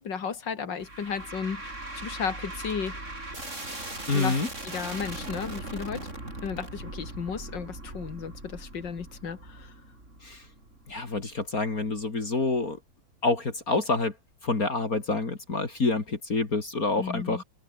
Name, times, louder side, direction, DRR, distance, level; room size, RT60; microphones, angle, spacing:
voice 1, 0.0-2.9 4.1-4.4 4.6-6.1 6.4-9.7 17.0-17.4, left 6 dB, 65° left, 2.9 m, -34 dB
sound 1, 0.8-12.1, right 2 dB, 35° right, 6.6 m, -40 dB
voice 2, 4.1-4.5 10.2-10.5 10.9-12.8 13.2-14.1 14.4-17.4, left 3 dB, 45° left, 3.5 m, -27 dB
omnidirectional pair, 2.1 m